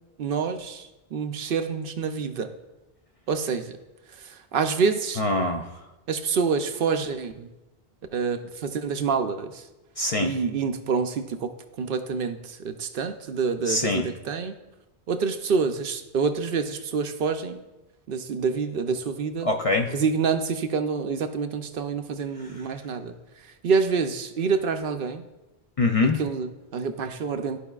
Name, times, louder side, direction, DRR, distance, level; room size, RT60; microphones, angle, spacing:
voice 1, 0.2-2.5 3.3-3.7 4.2-5.2 6.1-7.5 8.1-9.6 10.2-11.5 11.8-14.6 15.1-17.6 18.1-19.5 19.9-23.1 23.6-25.2 26.1-27.6, right 5 dB, 65° right, 8 dB, 0.7 m, -27 dB
voice 2, 5.2-5.6 10.0-10.3 13.7-14.1 19.4-19.9 25.8-26.2, left 2 dB, 50° left, 3 dB, 0.5 m, -23 dB
12.5 x 4.9 x 2.3 m, 1.0 s
omnidirectional pair, 1.0 m